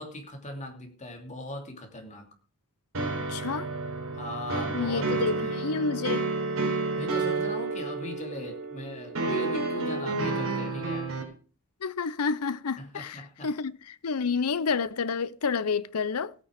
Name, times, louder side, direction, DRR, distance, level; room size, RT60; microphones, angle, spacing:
voice 1, 0.0-2.2 4.1-5.7 6.9-11.1 12.8-13.5, left 1 dB, 35° left, 2.8 m, -39 dB
sound 1, 2.9-11.2, right 3 dB, 65° right, 4.2 m, -30 dB
voice 2, 3.3-3.7 4.7-6.3 11.8-16.3, left 5 dB, 85° left, 0.7 m, -29 dB
16.0 x 9.1 x 5.0 m
head